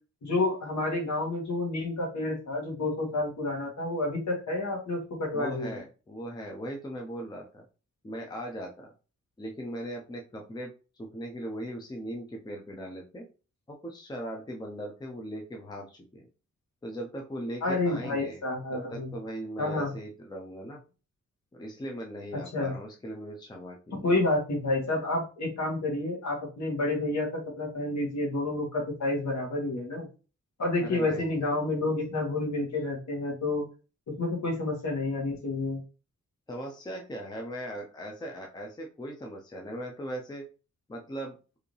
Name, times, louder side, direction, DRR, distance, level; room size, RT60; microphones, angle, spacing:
voice 1, 0.2-5.8 17.6-19.1 19.6-19.9 22.5-22.7 23.9-30.1 30.6-33.6 34.2-35.8, left 2 dB, 65° left, -1 dB, 1.8 m, -29 dB
voice 2, 5.3-7.6 8.0-8.9 9.4-10.7 11.0-13.3 13.7-16.3 16.8-18.4 18.7-20.8 21.5-24.1 30.8-31.5 36.5-40.4 40.9-41.4, equal, 15° left, 0 dB, 0.6 m, -39 dB
4.7 x 2.8 x 3.2 m, 0.33 s
wide cardioid pair, 180°, 30 cm